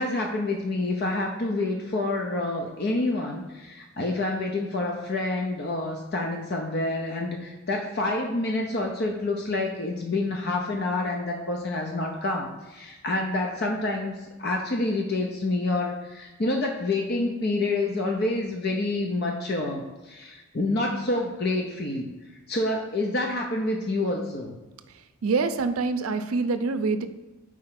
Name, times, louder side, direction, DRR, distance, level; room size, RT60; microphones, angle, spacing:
voice 1, 0.0-14.1 14.4-22.1 22.5-24.6, left 2 dB, 45° left, 1 dB, 0.6 m, -28 dB
voice 2, 25.2-27.1, right 4 dB, 75° right, 9 dB, 0.5 m, -25 dB
4.9 x 4.4 x 5.7 m, 1.2 s
head